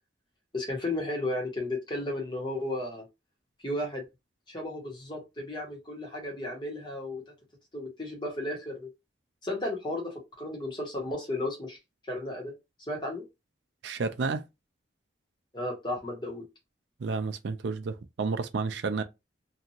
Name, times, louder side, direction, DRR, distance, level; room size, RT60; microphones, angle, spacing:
voice 1, 0.5-3.0 3.6-4.0 4.5-7.2 7.7-8.9 9.4-11.8 12.1-12.5 12.9-13.2 15.5-16.4, left 1 dB, 25° left, 1.1 m, -34 dB
voice 2, 13.8-14.4 17.0-19.0, right 4 dB, 70° right, 0.4 m, -31 dB
2.8 x 2.5 x 2.7 m
head